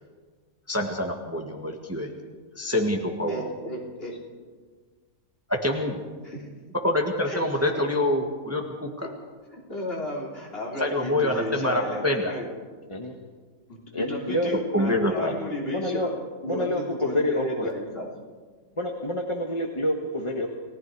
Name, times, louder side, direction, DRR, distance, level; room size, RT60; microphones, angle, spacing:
voice 1, 0.7-2.1 2.6-3.6 5.5-6.0 6.8-9.1 10.8-12.3 14.7-15.3, left 1 dB, 10° right, 2 dB, 1.6 m, -26 dB
voice 2, 3.3-4.2 6.2-6.5 7.3-7.4 9.0-9.1 9.5-12.4 13.7-16.1 16.4-18.1, left 1 dB, 40° left, -2 dB, 3.7 m, -33 dB
voice 3, 13.9-14.5 15.2-15.3 15.7-16.1 16.5-17.7 18.8-20.5, left 1 dB, 20° left, 1 dB, 1.3 m, -28 dB
30.0 x 18.5 x 4.7 m, 1.5 s
omnidirectional pair, 1.5 m